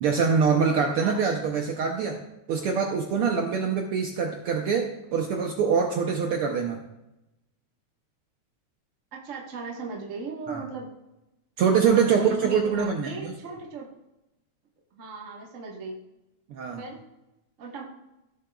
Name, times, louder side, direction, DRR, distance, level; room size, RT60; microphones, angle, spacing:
voice 1, 0.0-2.2 2.5-6.8 10.5-10.6 11.6-13.3 16.5-16.8, right 6 dB, 80° right, 3 dB, 1.2 m, -24 dB
voice 2, 9.1-10.9 11.8-13.9 14.9-16.0 16.8-17.0 17.6-17.8, right 4 dB, 45° right, -1 dB, 1.0 m, -37 dB
16.0 x 7.5 x 2.3 m, 0.93 s
omnidirectional pair, 3.3 m